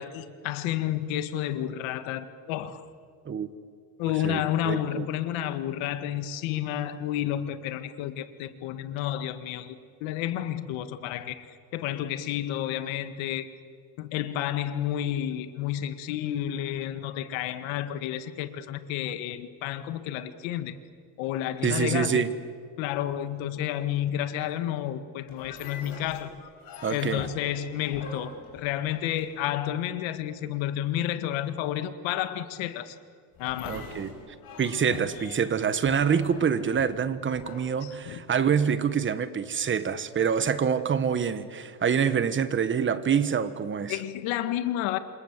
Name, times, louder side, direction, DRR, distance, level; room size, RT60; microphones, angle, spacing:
voice 1, 0.0-2.8 4.0-9.8 10.0-13.5 14.0-20.8 21.2-22.3 22.8-26.3 26.9-33.0 33.4-33.9 37.8-38.2 43.9-45.0, left 11 dB, 80° left, 11 dB, 1.9 m, -31 dB
voice 2, 4.2-5.0 21.6-22.3 26.8-27.3 33.7-34.1 34.6-44.0, right 7 dB, 25° right, 13 dB, 1.3 m, -26 dB
sound 1, 25.3-29.6 33.3-38.4, left 5 dB, 50° left, 6.3 m, -44 dB
28.5 x 27.0 x 7.5 m, 2.1 s
cardioid pair, 150°, 46 cm